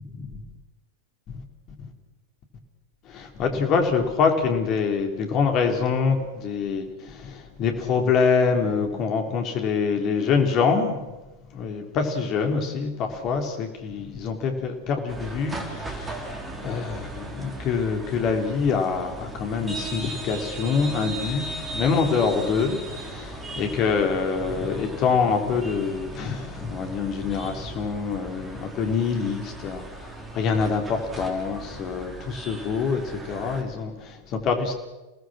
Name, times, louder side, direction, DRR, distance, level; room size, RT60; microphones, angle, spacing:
voice 1, 3.1-11.1 11.5-21.4 21.7-34.7, left 5 dB, 35° left, 4 dB, 3.5 m, -25 dB
sound 1, 15.1-33.6, right 2 dB, 15° right, 3.7 m, -37 dB
28.0 x 18.5 x 6.4 m, 1.1 s
figure-of-eight pair, 90°, 0 cm